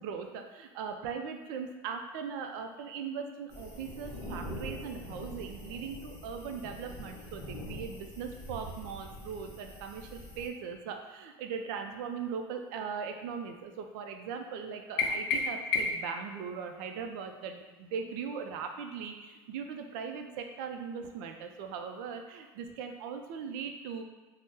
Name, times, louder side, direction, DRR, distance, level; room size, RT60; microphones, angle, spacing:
voice 1, 0.0-24.0, right 6 dB, 65° right, 5 dB, 0.4 m, -39 dB
sound 1, 3.5-10.5, equal, 20° left, 0.8 m, -44 dB
sound 2, 15.0-16.2, left 4 dB, 80° left, 0.5 m, -30 dB
2.7 x 2.0 x 3.5 m, 1.3 s
supercardioid pair, 135°, 12 cm